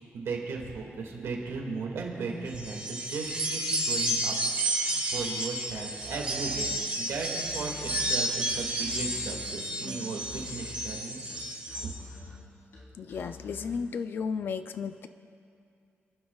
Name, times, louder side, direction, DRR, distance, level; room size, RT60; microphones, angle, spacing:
voice 1, 0.1-4.3 4.8-6.7 7.0-11.2, right 4 dB, 85° right, 0 dB, 2.1 m, -36 dB
sound 1, 2.5-11.9, right 1 dB, 25° right, 1.3 m, -31 dB
Musical instrument, 5.9-13.9, left 3 dB, 85° left, 3.6 m, -47 dB
voice 2, 13.0-15.1, left 6 dB, 50° left, 10 dB, 0.4 m, -34 dB
28.5 x 11.0 x 2.4 m, 2.5 s
wide cardioid pair, 180°, 5 cm